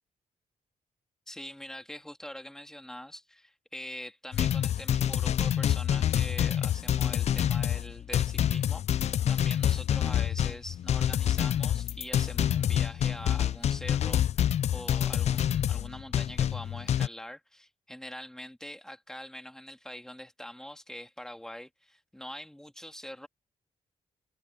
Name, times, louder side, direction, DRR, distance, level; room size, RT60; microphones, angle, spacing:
voice 1, 1.3-23.3, equal, 5° left, 2.4 m, -44 dB
sound 1, 4.3-17.1, left 10 dB, 55° left, 0.4 m, -27 dB
cardioid pair, 115°, 13 cm